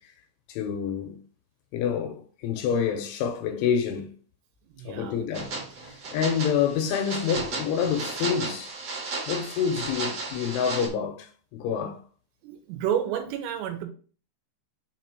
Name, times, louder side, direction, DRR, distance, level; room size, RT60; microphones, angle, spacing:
voice 1, 0.5-1.2 1.7-4.1 4.8-5.6 5.8-8.7 9.3-12.0, left 7 dB, 85° left, 2.9 m, -27 dB
voice 2, 4.7-5.2 12.4-13.8, right 9 dB, 90° right, 3.6 m, -30 dB
sound 1, 5.3-10.9, right 3 dB, 70° right, 1.4 m, -34 dB
7.4 x 2.8 x 5.9 m
omnidirectional pair, 5.8 m